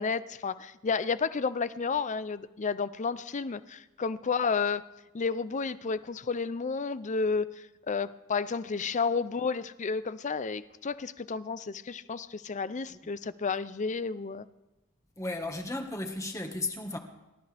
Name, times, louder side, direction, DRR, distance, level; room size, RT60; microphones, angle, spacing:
voice 1, 0.0-4.8 5.1-14.4, left 5 dB, 35° left, 0.5 m, -31 dB
voice 2, 15.2-17.0, left 2 dB, 15° left, 1.6 m, -34 dB
30.0 x 13.5 x 3.5 m
head